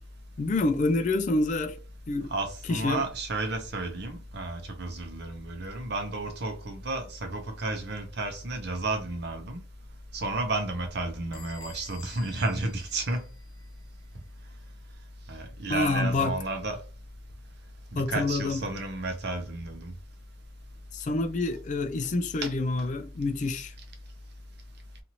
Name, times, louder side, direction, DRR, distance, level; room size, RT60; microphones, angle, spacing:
voice 1, 0.4-1.8 2.1-2.3 2.7-3.0 15.7-16.3 18.0-18.6 20.9-23.7, left 2 dB, 40° left, 0.3 m, -27 dB
voice 2, 2.3-9.6 10.1-13.2 15.3-16.8 17.9-19.9 22.4-22.5, right 2 dB, 55° right, 0.6 m, -32 dB
Bell / Door, 11.3-13.8, left 7 dB, 75° left, 0.6 m, -51 dB
2.8 x 2.5 x 2.9 m
head